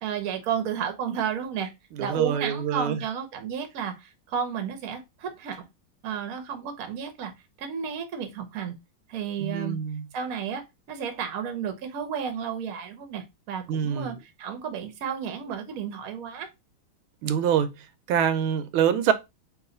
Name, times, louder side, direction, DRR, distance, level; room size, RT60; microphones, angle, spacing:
voice 1, 0.0-1.7 2.0-5.7 6.0-7.3 7.6-8.7 9.1-9.8 10.1-10.6 10.9-16.5, right 7 dB, 60° right, 1.0 m, -32 dB
voice 2, 2.0-3.0 9.4-10.0 13.7-14.2 17.2-17.7 18.1-19.1, right 8 dB, 85° right, 1.4 m, -25 dB
3.1 x 2.9 x 3.8 m
omnidirectional pair, 2.2 m